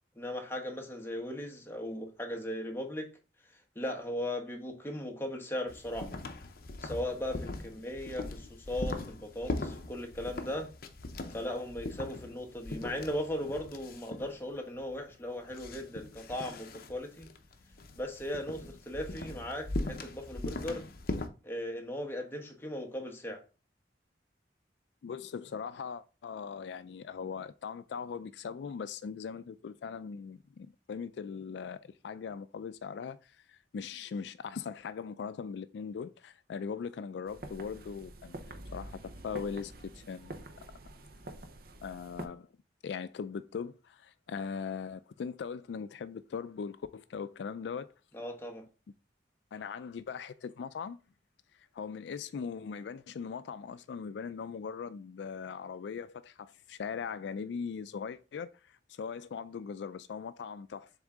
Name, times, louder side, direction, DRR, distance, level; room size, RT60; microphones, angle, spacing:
voice 1, 0.2-3.1 3.7-6.2 6.8-10.7 11.3-17.3 18.0-20.8 21.4-23.4 48.1-48.6, left 1 dB, 15° left, 1.1 m, -37 dB
sound 1, 5.7-21.3, left 2 dB, 55° left, 0.7 m, -40 dB
voice 2, 25.0-40.4 41.8-42.5 42.8-47.9 49.5-51.0 51.6-60.9, left 6 dB, 80° left, 0.3 m, -40 dB
sound 2, 37.3-42.3, right 1 dB, 55° right, 0.7 m, -47 dB
7.1 x 3.7 x 3.6 m
head